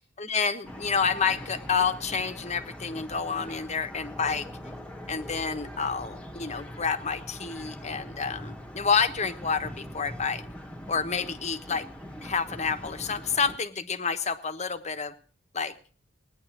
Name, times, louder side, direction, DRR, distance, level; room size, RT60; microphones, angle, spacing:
voice 1, 0.2-4.5 5.1-10.4 10.9-11.9 12.2-15.1 15.5-15.7, left 5 dB, 35° left, 9 dB, 1.1 m, -29 dB
sound 1, 0.6-13.6, equal, 5° left, 1.5 m, -42 dB
19.0 x 10.5 x 6.1 m, 0.43 s
head